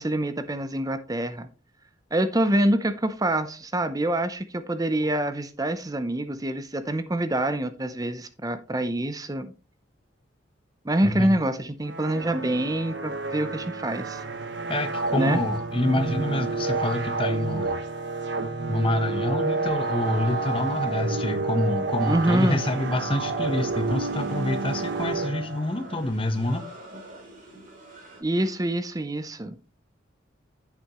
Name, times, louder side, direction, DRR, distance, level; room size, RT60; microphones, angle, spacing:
voice 1, 0.0-1.5 2.1-9.5 10.8-14.2 15.2-15.4 22.1-22.6 28.2-29.5, right 1 dB, 20° right, 0.6 m, -26 dB
sound 1, 11.9-26.0, right 3 dB, 60° right, 1.1 m, -30 dB
voice 2, 14.7-17.8 18.7-26.6, left 1 dB, 25° left, 1.1 m, -27 dB
sound 2, 22.2-28.2, right 1 dB, 45° right, 3.9 m, -47 dB
10.0 x 8.3 x 3.0 m
head